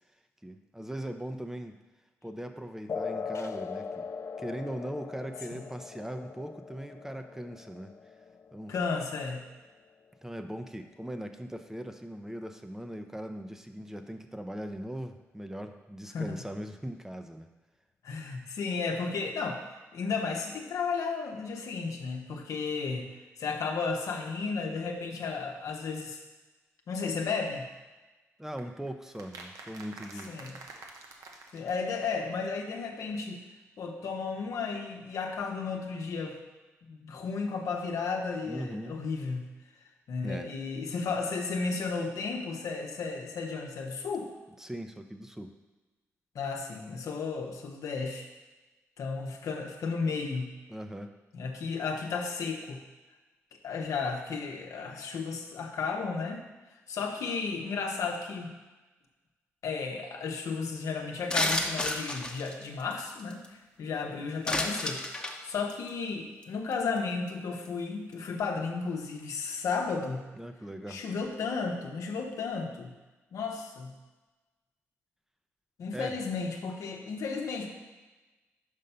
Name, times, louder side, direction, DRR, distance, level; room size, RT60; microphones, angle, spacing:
voice 1, 0.4-1.8 2.2-4.1 4.4-7.9 8.5-8.7 10.2-17.5 28.4-30.3 34.0-34.1 38.4-38.9 40.2-40.5 44.6-45.5 50.7-51.1 70.4-71.0 75.9-76.2, right 1 dB, 10° right, 7 dB, 0.6 m, -39 dB
sound 1, 2.9-9.9, left 5 dB, 55° left, 0.4 m, -40 dB
voice 2, 8.7-9.4 16.1-16.3 18.0-19.6 19.9-23.1 23.4-26.2 26.9-27.7 30.3-30.5 31.5-33.4 33.8-36.4 36.9-39.5 40.1-44.3 46.3-48.3 49.0-50.5 51.3-52.8 53.5-56.4 56.9-58.5 59.6-63.4 63.8-70.2 70.9-72.9 73.3-73.9 75.8-77.7, left 4 dB, 75° left, 2 dB, 0.9 m, -33 dB
sound 2, 28.6-32.3 32.6-32.7 32.8-32.9 33.1-33.2, right 3 dB, 75° right, 0.9 m, -48 dB
sound 3, 61.3-63.5 64.5-65.4 65.7-65.9 66.4-66.5 66.7-67.0 67.3-67.4, left 1 dB, 15° left, 0.9 m, -31 dB
5.4 x 5.3 x 5.5 m, 1.2 s
supercardioid pair, 55°, 6 cm